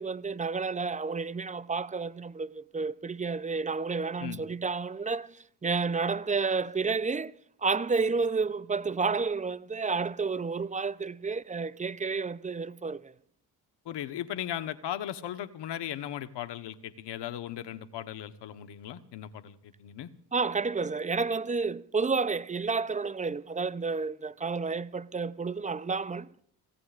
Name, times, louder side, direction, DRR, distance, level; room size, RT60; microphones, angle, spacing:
voice 1, 0.0-7.3 7.6-13.1 20.3-26.3, right 4 dB, 15° right, 0.7 m, -30 dB
voice 2, 13.8-20.1, left 11 dB, 70° left, 1.3 m, -37 dB
26.0 x 16.5 x 2.6 m
hypercardioid pair, 50°, 43 cm